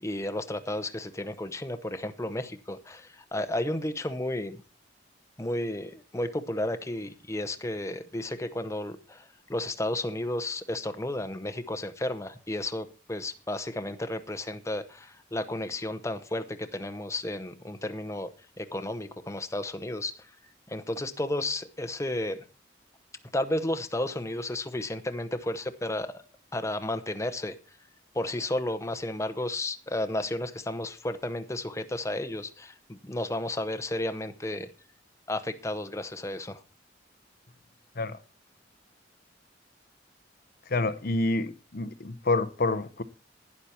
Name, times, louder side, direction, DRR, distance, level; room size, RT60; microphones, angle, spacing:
voice 1, 0.0-4.6 5.4-18.3 18.6-20.1 20.7-22.4 23.3-26.2 26.5-27.6 28.1-34.7 35.3-36.6, left 1 dB, 15° left, 0.8 m, -32 dB
voice 2, 40.7-43.0, left 2 dB, 50° left, 0.7 m, -28 dB
11.5 x 9.7 x 4.4 m
head